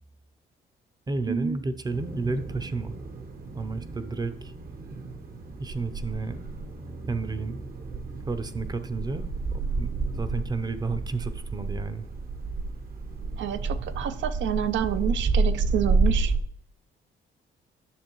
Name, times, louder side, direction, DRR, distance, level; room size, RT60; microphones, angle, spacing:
voice 1, 1.1-3.0 3.5-4.5 5.6-6.4 7.1-7.6 8.3-12.1, right 3 dB, 20° right, 11 dB, 0.6 m, -32 dB
sound 1, 1.9-16.4, right 3 dB, 50° right, 0.9 m, -30 dB
voice 2, 13.4-16.3, right 9 dB, 70° right, 12 dB, 0.6 m, -28 dB
9.9 x 6.4 x 3.1 m, 0.66 s
cardioid pair, 90°, 20 cm